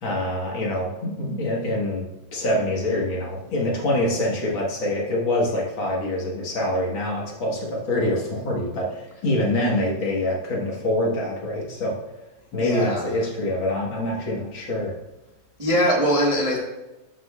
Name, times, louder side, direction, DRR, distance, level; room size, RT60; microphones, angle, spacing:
voice 1, 0.0-2.1 2.3-11.9 12.5-14.9, left 1 dB, 45° left, -3 dB, 2.1 m, -25 dB
voice 2, 12.6-13.1 15.6-16.6, equal, 35° right, -3 dB, 0.5 m, -21 dB
13.0 x 7.6 x 2.5 m, 1.1 s
omnidirectional pair, 3.4 m